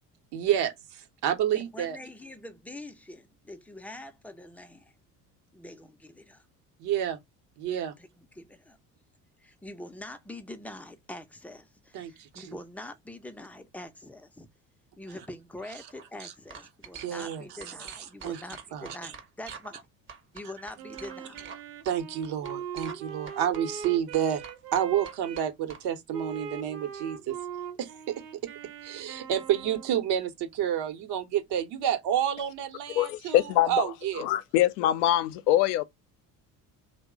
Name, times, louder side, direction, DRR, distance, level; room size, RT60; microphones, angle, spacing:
voice 1, 0.3-2.0 6.8-7.2 7.6-7.9 11.9-12.5 16.2-16.3 16.9-18.4 18.7-19.1 21.8-24.4 24.7-27.4 27.8-28.4 28.8-34.3, right 10 dB, 55° right, 0.9 m, -30 dB
voice 2, 1.5-4.9 5.5-6.4 8.0-8.8 9.4-14.5 15.0-19.8 20.3-21.5, left 1 dB, 5° left, 0.5 m, -44 dB
sound 1, 15.7-16.0 16.5-17.3 17.6-19.8 20.1-21.6 21.8-22.0 22.4-23.0 23.3-25.8, right 6 dB, 25° right, 0.8 m, -46 dB
Wind instrument woodwind instrument, 20.8-25.5 26.1-30.1, right 7 dB, 80° right, 0.7 m, -41 dB
voice 3, 33.0-33.9 34.2-35.8, left 13 dB, 65° left, 0.6 m, -24 dB
2.9 x 2.2 x 3.5 m
figure-of-eight pair, 60°, 48 cm